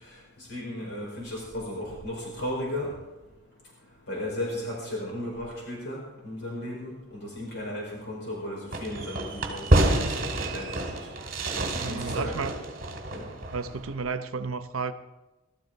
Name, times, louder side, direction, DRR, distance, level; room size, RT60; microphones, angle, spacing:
voice 1, 0.4-2.9 4.1-9.7 9.9-11.1 11.6-12.4 13.1-13.3, left 1 dB, 55° left, 5.2 m, -35 dB
Fireworks, 8.7-13.9, right 1 dB, 45° right, 2.2 m, -28 dB
voice 2, 11.8-12.5 13.5-14.9, right 4 dB, 80° right, 0.8 m, -32 dB
20.0 x 13.5 x 4.1 m
head